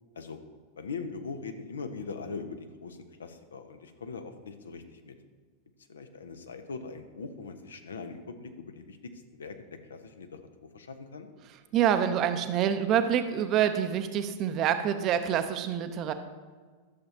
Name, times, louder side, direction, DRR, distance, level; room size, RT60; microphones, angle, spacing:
voice 1, 0.8-5.2 5.9-11.3, left 4 dB, 70° left, 8 dB, 0.6 m, -41 dB
voice 2, 11.7-16.1, right 9 dB, 35° right, 9 dB, 0.6 m, -26 dB
12.0 x 6.7 x 2.7 m, 1.5 s
figure-of-eight pair, 90°, 0 cm